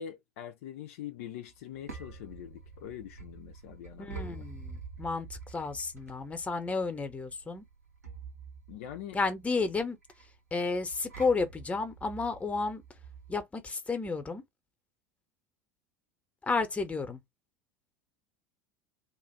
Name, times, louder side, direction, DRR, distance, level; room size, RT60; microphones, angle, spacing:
voice 1, 0.0-4.4 8.7-9.2, left 10 dB, 60° left, 0.5 m, -43 dB
sound 1, 1.5-13.4, right 4 dB, 80° right, 1.1 m, -47 dB
voice 2, 4.0-7.6 9.1-10.0 10.5-12.8 13.3-14.4 16.4-17.2, left 4 dB, 15° left, 1.0 m, -32 dB
3.0 x 2.4 x 4.3 m
figure-of-eight pair, 70°, 8 cm